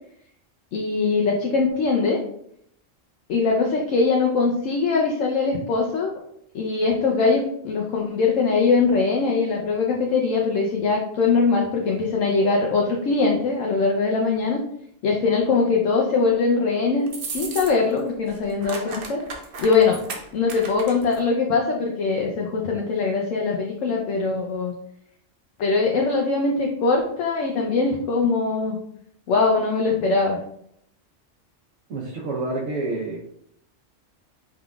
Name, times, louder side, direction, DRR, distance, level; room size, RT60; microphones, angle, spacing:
voice 1, 0.7-2.2 3.3-6.1 6.5-14.6 15.0-19.2 19.6-20.0 20.3-24.7 25.6-28.8 29.3-30.4, left 4 dB, 80° left, 0 dB, 1.0 m, -22 dB
sound 1, 17.1-18.0 18.3-21.2, right 4 dB, 55° right, 0.8 m, -35 dB
voice 2, 31.9-33.3, right 2 dB, 75° right, -4 dB, 1.1 m, -28 dB
4.8 x 3.6 x 2.3 m, 0.71 s
omnidirectional pair, 1.3 m